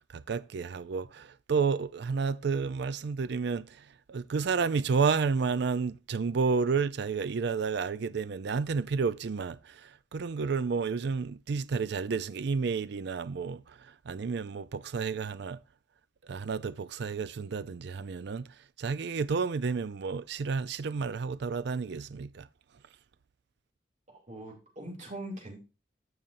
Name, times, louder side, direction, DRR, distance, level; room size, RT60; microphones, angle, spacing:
voice 1, 0.1-15.6 16.3-22.5, right 5 dB, 65° right, 0.4 m, -31 dB
voice 2, 24.1-25.7, right 1 dB, 45° right, 2.7 m, -42 dB
14.5 x 5.5 x 2.6 m
head